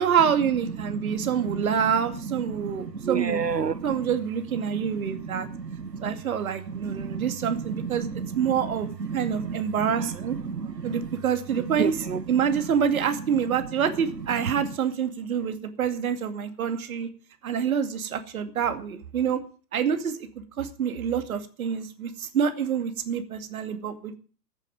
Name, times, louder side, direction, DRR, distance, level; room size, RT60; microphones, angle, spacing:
voice 1, 0.0-3.4 3.8-5.5 6.0-8.1 8.3-8.9 9.1-10.4 10.8-11.9 12.3-17.1 17.4-19.4 19.7-20.2 20.6-24.2, right 7 dB, 60° right, 2.4 m, -26 dB
voice 2, 0.8-4.1 4.5-6.2 6.7-11.2 11.5-12.7 13.5-13.7 14.2-14.8, right 5 dB, 85° right, 1.2 m, -33 dB
14.5 x 7.3 x 9.2 m
figure-of-eight pair, 115°, 48 cm